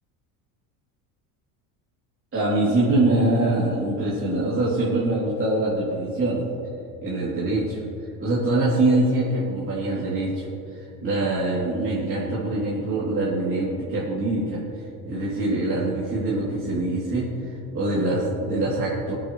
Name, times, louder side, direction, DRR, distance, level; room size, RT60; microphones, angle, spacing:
voice 1, 2.3-6.4 7.0-7.8 8.2-10.5 10.7-14.6 15.0-19.1, right 2 dB, 30° right, -8 dB, 3.3 m, -24 dB
21.0 x 8.6 x 3.3 m, 2.8 s
supercardioid pair, 100°, 42 cm